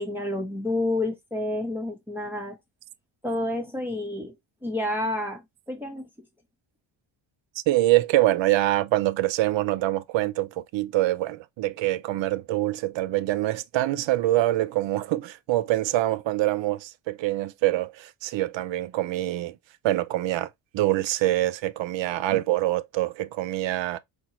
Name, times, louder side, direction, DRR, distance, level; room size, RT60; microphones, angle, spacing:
voice 1, 0.0-2.6 3.2-4.3 4.6-5.4 5.7-6.1, left 1 dB, 5° right, 1.0 m, -29 dB
voice 2, 7.7-19.5 19.8-20.5 20.7-24.0, right 16 dB, 65° right, 0.5 m, -25 dB
4.4 x 2.3 x 3.0 m
cardioid pair, 140°, 48 cm